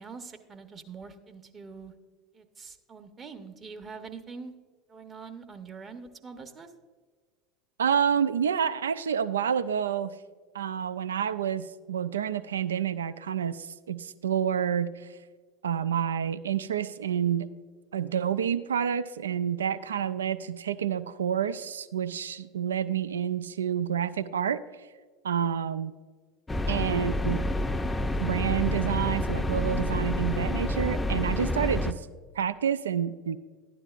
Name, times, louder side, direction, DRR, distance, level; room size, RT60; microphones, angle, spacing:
voice 1, 0.0-1.9 2.3-4.5 4.9-6.7, right 5 dB, 35° right, 7 dB, 1.0 m, -44 dB
voice 2, 7.8-10.1 10.5-15.1 15.6-17.5 17.9-24.6 25.2-25.9 26.7-27.5 28.2-32.1 32.4-33.4, right 8 dB, 85° right, 14 dB, 0.3 m, -28 dB
sound 1, 26.5-31.9, left 1 dB, 15° left, 0.5 m, -28 dB
12.0 x 9.8 x 2.5 m, 1.5 s
hypercardioid pair, 75°, 0 cm